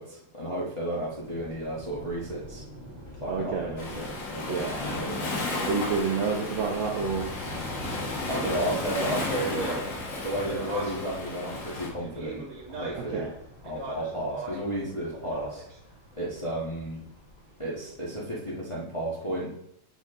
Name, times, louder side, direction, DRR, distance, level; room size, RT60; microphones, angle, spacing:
voice 1, 0.0-2.6 3.2-5.5 8.3-9.6 10.2-12.4 12.7-13.3 13.6-15.6 16.2-17.0 17.6-19.5, right 1 dB, 30° left, -6 dB, 0.5 m, -33 dB
Thunder, 0.9-18.3, equal, 10° right, 1.8 m, -46 dB
voice 2, 3.2-3.7 4.5-4.7 5.5-7.3 12.9-13.3, right 5 dB, 90° right, -1 dB, 1.0 m, -29 dB
Waves surf, 3.8-11.9, left 2 dB, 50° left, 1.6 m, -33 dB
Speech, 9.0-11.2 12.0-13.2 13.6-14.7 15.1-15.8, right 2 dB, 70° right, 2.9 m, -38 dB
6.9 x 6.1 x 3.7 m, 0.73 s
omnidirectional pair, 3.3 m